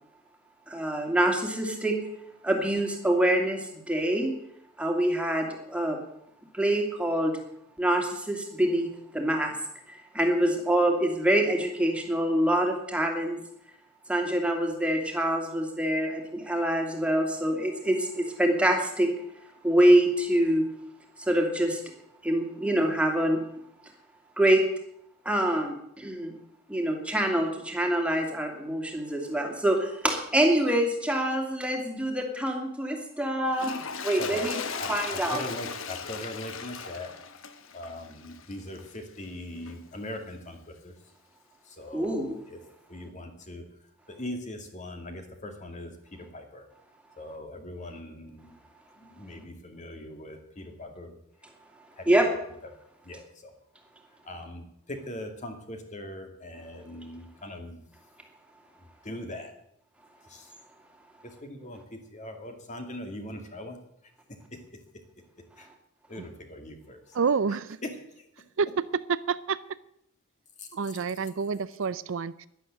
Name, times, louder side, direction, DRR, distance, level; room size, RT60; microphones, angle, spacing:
voice 1, 0.7-2.0 2.4-4.3 4.8-6.0 6.5-7.4 7.8-9.5 9.9-13.4 14.1-19.1 19.6-20.6 21.2-21.8 22.2-23.4 24.4-24.6 25.2-26.3 26.7-33.7 34.0-34.6 34.9-35.4 41.9-42.4 52.1-52.3, right 1 dB, 5° right, 2 dB, 2.7 m, -25 dB
Toilet flush, 33.5-39.0 39.6-39.8, left 5 dB, 65° left, 1.2 m, -37 dB
voice 2, 34.8-37.1 37.7-40.9 41.7-42.6 42.9-43.6 44.1-46.7 47.2-48.5 49.0-51.2 52.0-52.1 53.0-53.5 54.2-57.8 59.0-59.5 60.3-60.5 61.2-63.8 65.6-65.7 66.1-67.0 67.8-68.2 70.6-70.7, left 1 dB, 35° left, 5 dB, 2.4 m, -40 dB
voice 3, 67.1-67.8 68.6-69.6 70.7-72.5, right 5 dB, 65° right, 16 dB, 0.5 m, -28 dB
11.5 x 11.0 x 9.0 m, 0.74 s
head